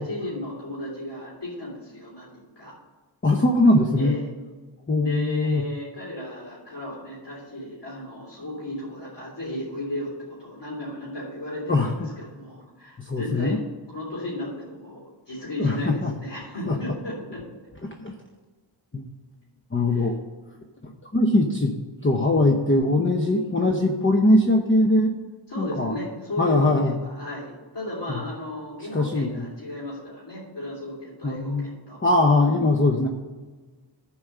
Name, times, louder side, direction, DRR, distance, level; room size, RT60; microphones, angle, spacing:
voice 1, 0.0-2.8 4.0-4.2 5.0-17.4 19.9-20.1 25.5-32.0, left 1 dB, 65° left, -7 dB, 3.3 m, -35 dB
voice 2, 3.2-4.1 4.9-5.6 11.7-12.1 13.0-13.6 15.6-16.1 16.7-16.8 17.8-18.1 18.9-19.1 19.7-20.2 20.8-21.8 22.0-25.1 25.6-25.9 26.4-27.0 28.1-28.2 28.9-29.5 31.2-31.7 32.0-33.1, left 2 dB, 25° left, 2 dB, 0.8 m, -21 dB
11.0 x 4.7 x 6.7 m, 1.3 s
wide cardioid pair, 60°, 45 cm